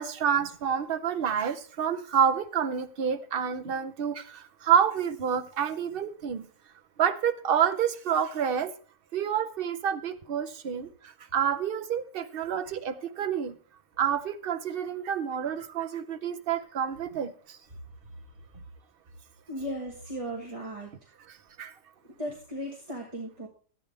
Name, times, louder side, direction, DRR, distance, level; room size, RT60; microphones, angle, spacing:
voice 1, 0.0-6.5 7.0-8.7 9.1-10.9 11.3-13.5 14.0-17.3 21.6-21.7, right 8 dB, 50° right, 10 dB, 0.8 m, -28 dB
voice 2, 19.5-20.9 22.2-23.5, equal, 25° right, -1 dB, 1.6 m, -36 dB
13.0 x 9.0 x 3.3 m, 0.43 s
omnidirectional pair, 1.4 m